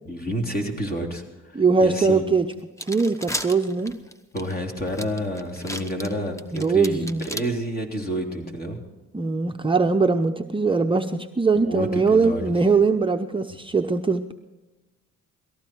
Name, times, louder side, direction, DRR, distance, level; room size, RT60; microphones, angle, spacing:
voice 1, 0.0-2.2 4.3-8.8 11.5-12.5, equal, 30° left, 2 dB, 3.4 m, -29 dB
voice 2, 1.5-2.5 2.9-3.9 6.5-7.3 9.1-14.3, right 4 dB, 15° right, 4 dB, 0.7 m, -21 dB
sound 1, 2.0-2.1 2.5-7.4, equal, 10° left, 1.1 m, -34 dB
18.5 x 14.5 x 4.6 m, 1.1 s
cardioid pair, 90°, 30 cm